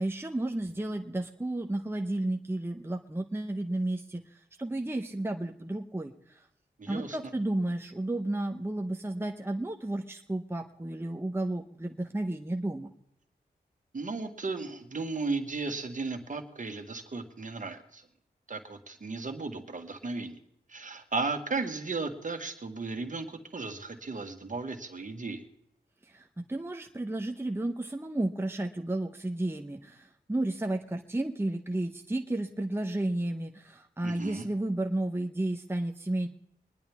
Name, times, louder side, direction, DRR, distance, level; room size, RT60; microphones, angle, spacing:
voice 1, 0.0-4.3 4.6-6.5 6.9-12.9 26.1-36.3, right 1 dB, 15° right, 4 dB, 1.0 m, -32 dB
voice 2, 6.8-7.2 13.9-18.0 18.5-20.4 20.7-25.4 34.0-34.5, right 3 dB, 50° right, 5 dB, 1.7 m, -35 dB
24.0 x 10.5 x 3.6 m, 0.75 s
cardioid pair, 50°, 17 cm